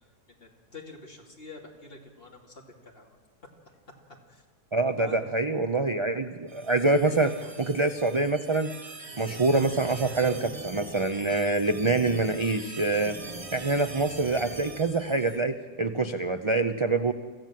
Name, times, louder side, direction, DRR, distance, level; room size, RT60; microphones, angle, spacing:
voice 1, 0.4-3.1 3.7-3.8 4.3-4.4 5.0-5.2 7.4-7.6, left 2 dB, 35° left, 1 dB, 2.9 m, -46 dB
voice 2, 4.7-8.7 9.2-13.2 13.5-17.1, right 3 dB, 40° right, 9 dB, 0.4 m, -25 dB
sound 1, 6.5-15.4, right 3 dB, 25° right, 1.0 m, -42 dB
25.5 x 15.0 x 7.7 m, 1.4 s
omnidirectional pair, 1.7 m